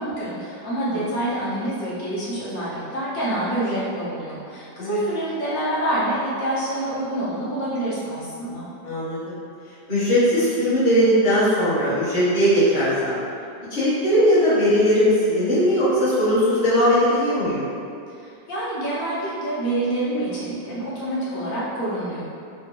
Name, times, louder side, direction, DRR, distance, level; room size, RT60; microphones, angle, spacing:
voice 1, 0.0-8.7 18.2-22.2, right 1 dB, 60° left, -9 dB, 1.3 m, -27 dB
voice 2, 8.8-9.4 9.9-13.2 13.7-17.6, equal, 35° left, -11 dB, 0.9 m, -19 dB
3.5 x 2.2 x 2.9 m, 2.5 s
omnidirectional pair, 2.0 m